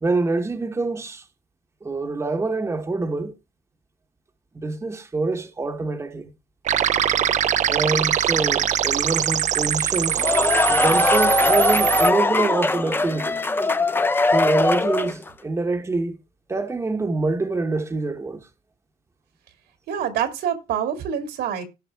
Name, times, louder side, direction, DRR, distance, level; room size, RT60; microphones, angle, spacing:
voice 1, 0.0-1.3 1.8-3.4 4.5-6.3 7.6-10.3 10.7-13.4 14.3-16.2 16.5-18.5, right 3 dB, 15° right, 1.0 m, -25 dB
sound 1, 6.7-12.1, right 10 dB, 45° right, 0.5 m, -22 dB
sound 2, 10.0-15.3, left 2 dB, 15° left, 0.6 m, -20 dB
voice 2, 19.9-21.6, right 9 dB, 80° right, 2.2 m, -26 dB
17.0 x 5.8 x 3.4 m
cardioid pair, 110°, 17 cm